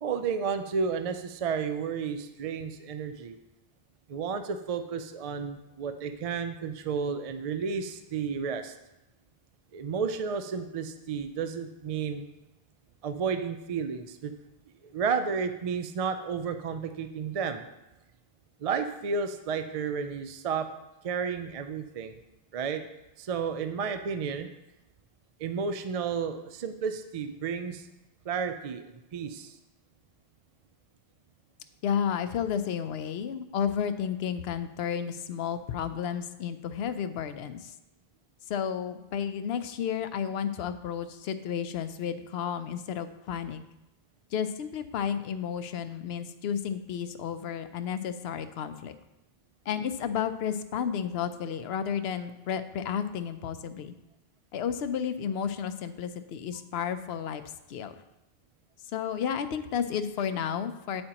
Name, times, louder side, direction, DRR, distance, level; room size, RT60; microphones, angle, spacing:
voice 1, 0.0-3.4 4.1-8.7 9.7-12.2 13.0-14.3 14.9-17.7 18.6-20.7 21.0-22.2 22.5-22.8 23.2-24.5 25.4-27.9 28.3-29.6, right 6 dB, 55° right, 8 dB, 0.4 m, -32 dB
voice 2, 31.8-37.7 38.5-43.6 44.3-48.9 49.7-53.9 54.5-57.4 57.7-57.9 58.9-61.0, left 8 dB, 80° left, 10 dB, 0.8 m, -32 dB
8.6 x 8.6 x 2.9 m, 0.95 s
omnidirectional pair, 1.0 m